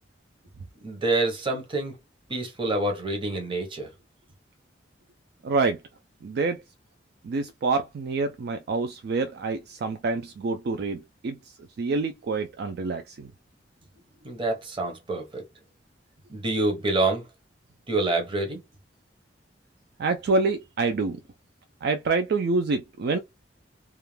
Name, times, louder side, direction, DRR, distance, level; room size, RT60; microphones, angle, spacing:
voice 1, 0.8-1.9 2.3-3.9 14.2-15.4 16.3-17.3 17.9-18.6, right 2 dB, 30° right, 0.8 m, -27 dB
voice 2, 5.4-5.8 6.2-6.6 7.2-11.4 11.8-13.3 20.0-21.2 21.8-23.2, right 3 dB, 60° right, 0.3 m, -27 dB
2.4 x 2.1 x 3.1 m
head